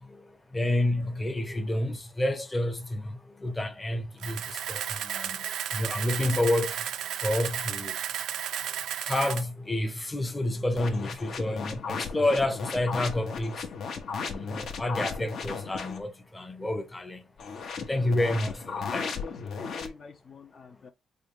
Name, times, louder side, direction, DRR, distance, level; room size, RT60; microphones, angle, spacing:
voice 1, 0.0-5.4 5.7-6.9 7.2-8.0 9.0-13.7 14.1-17.2 17.8-19.1, left 1 dB, 15° left, 0.7 m, -29 dB
Camera, 4.2-9.4, right 10 dB, 80° right, 0.3 m, -33 dB
sound 1, 10.8-16.0 17.4-19.9, left 5 dB, 65° left, 0.9 m, -36 dB
voice 2, 18.9-20.9, left 5 dB, 50° left, 0.5 m, -43 dB
3.8 x 2.4 x 3.4 m
cardioid pair, 90°, 0 cm